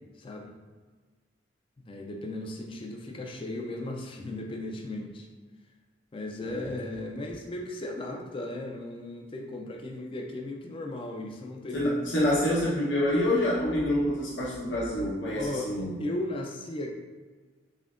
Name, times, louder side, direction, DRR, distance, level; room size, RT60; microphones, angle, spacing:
voice 1, 0.2-0.5 1.8-5.3 6.1-12.0 15.3-15.7 16.0-16.9, left 1 dB, 25° left, 2 dB, 0.4 m, -36 dB
voice 2, 11.7-16.0, left 1 dB, 70° left, -7 dB, 0.9 m, -27 dB
4.2 x 3.6 x 2.4 m, 1.5 s
head